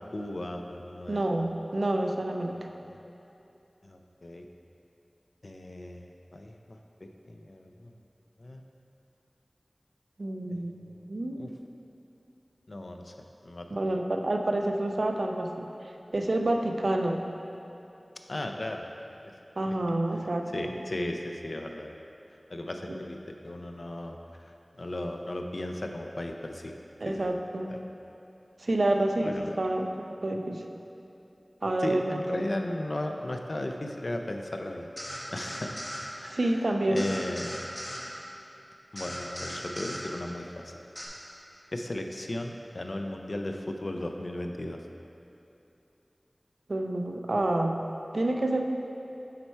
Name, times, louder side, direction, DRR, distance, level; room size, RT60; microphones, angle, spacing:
voice 1, 0.0-1.2 2.5-3.0 3.8-4.5 5.4-7.9 8.4-8.6 10.5-11.1 11.4-11.5 12.7-13.1 13.4-13.7 18.3-18.9 20.5-22.0 22.5-26.7 27.0-27.4 27.7-27.8 29.2-29.6 31.8-34.9 35.3-37.5 38.9-40.7 41.7-44.8, left 1 dB, 65° left, 4 dB, 0.4 m, -36 dB
voice 2, 1.1-2.6 10.2-11.4 13.7-15.7 16.1-17.2 19.6-20.8 27.0-27.7 28.6-30.6 31.6-32.5 36.2-37.1 46.7-47.8 48.1-48.6, right 1 dB, 80° right, 3 dB, 0.4 m, -28 dB
sound 1, 35.0-36.0 37.0-38.0 39.0-40.0 41.0-41.1, equal, 20° left, 1.2 m, -38 dB
7.2 x 4.5 x 4.4 m, 2.8 s
wide cardioid pair, 40°, 0 cm